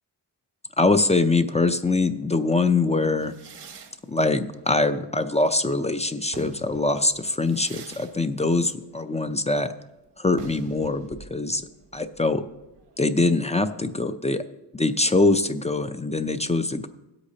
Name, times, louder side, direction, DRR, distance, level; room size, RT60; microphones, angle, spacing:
voice 1, 0.8-3.3 4.1-9.7 10.2-11.6 11.9-12.4 13.0-14.4 14.7-16.9, left 2 dB, 15° left, 9 dB, 0.4 m, -23 dB
sound 1, 3.2-5.7 6.1-13.6, right 4 dB, 75° right, 1.1 m, -46 dB
17.0 x 8.2 x 2.8 m, 0.97 s
wide cardioid pair, 110°, 42 cm